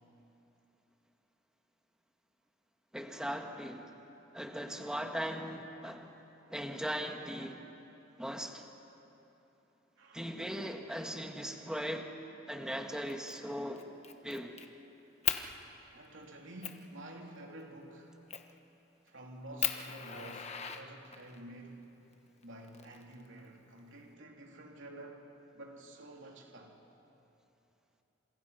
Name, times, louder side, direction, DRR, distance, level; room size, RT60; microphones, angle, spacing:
voice 1, 2.9-3.9 4.3-6.1 6.5-7.6 8.2-8.7 10.1-12.1 12.5-13.8 14.2-14.6, equal, 5° right, 1.6 m, -39 dB
voice 2, 10.0-10.3 15.9-18.2 19.0-21.9 22.4-26.8, right 1 dB, 70° right, 3.2 m, -50 dB
Fire, 13.1-13.4 13.8-14.7 15.2-15.4 16.0-16.1 16.6-16.8 18.3-18.6 19.1-19.2 19.6-21.4 22.4-23.4, left 9 dB, 35° left, 1.1 m, -36 dB
29.0 x 27.5 x 5.7 m
head